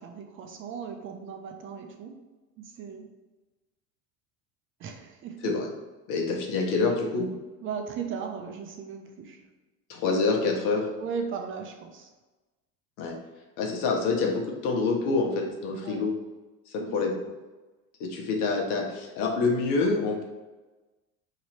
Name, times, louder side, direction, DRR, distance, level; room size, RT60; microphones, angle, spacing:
voice 1, 0.0-2.1 2.6-3.1 4.8-5.5 7.6-9.4 11.0-12.1 15.8-16.0 16.8-17.0, right 6 dB, 35° right, 4 dB, 0.5 m, -37 dB
voice 2, 6.1-7.3 9.9-10.9 13.0-13.1 13.6-16.1 16.7-17.1 18.0-20.2, left 4 dB, 65° left, 1 dB, 1.0 m, -26 dB
3.0 x 2.9 x 4.2 m, 1.2 s
supercardioid pair, 125°, 34 cm